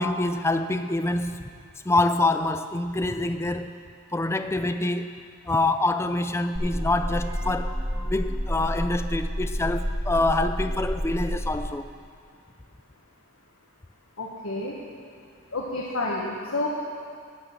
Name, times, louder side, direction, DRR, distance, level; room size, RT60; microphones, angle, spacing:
voice 1, 0.0-1.4 1.9-3.8 4.1-5.2 5.5-7.7 8.1-11.9, left 2 dB, 10° left, 9 dB, 0.4 m, -26 dB
sound 1, 6.5-11.5, equal, 5° right, 1.5 m, -29 dB
voice 2, 14.2-14.7 15.5-16.7, left 2 dB, 80° left, -4 dB, 1.5 m, -29 dB
12.5 x 6.0 x 8.8 m, 2.3 s
head